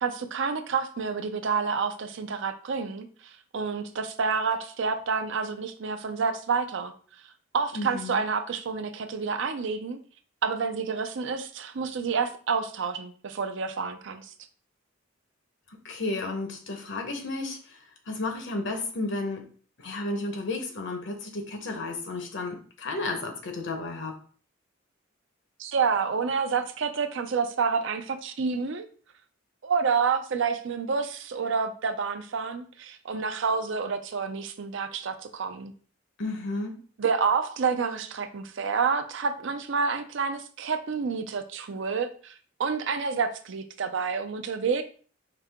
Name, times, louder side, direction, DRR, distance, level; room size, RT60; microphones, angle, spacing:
voice 1, 0.0-3.1 3.5-6.9 7.5-10.0 10.4-14.3 25.6-28.9 29.6-35.7 37.0-42.3 42.6-44.8, right 5 dB, 70° right, 8 dB, 0.5 m, -28 dB
voice 2, 7.7-8.2 15.7-19.4 19.8-24.2 36.2-36.8, left 2 dB, 65° left, 4 dB, 1.0 m, -33 dB
4.9 x 2.8 x 3.5 m, 0.43 s
head